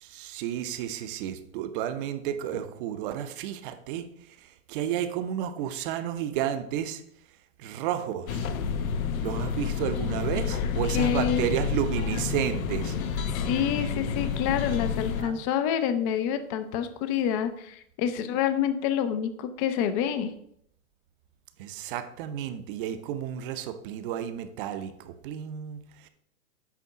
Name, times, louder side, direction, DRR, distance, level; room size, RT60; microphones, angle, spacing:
voice 1, 0.0-4.1 4.7-7.0 7.6-8.4 9.2-13.0 15.2-15.4 21.6-26.1, right 10 dB, 40° right, 10 dB, 0.7 m, -32 dB
sound 1, 8.3-15.2, left 6 dB, 80° left, 0.9 m, -29 dB
voice 2, 10.9-11.5 13.3-20.3, left 9 dB, 25° left, 10 dB, 0.5 m, -28 dB
8.4 x 3.5 x 5.8 m, 0.70 s
hypercardioid pair, 145°, 42 cm